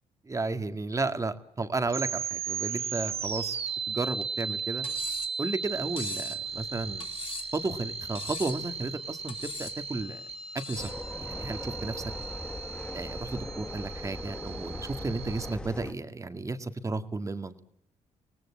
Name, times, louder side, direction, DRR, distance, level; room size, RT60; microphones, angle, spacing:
voice 1, 0.3-3.6 3.9-4.9 5.4-7.1 7.5-10.2 10.7-10.9 11.2-12.0 12.9-17.6, right 3 dB, 25° right, 9 dB, 2.0 m, -33 dB
sound 1, 1.9-15.5, right 6 dB, 55° right, 1.5 m, -36 dB
Cutlery silverware, 4.8-5.4 6.0-6.4 7.0-7.6 8.2-8.7 9.3-9.8 10.6-11.0, left 5 dB, 50° left, 2.6 m, -40 dB
sound 2, 10.8-15.9, left 1 dB, 5° left, 1.2 m, -39 dB
25.5 x 18.5 x 8.5 m, 0.71 s
cardioid pair, 95°, 12 cm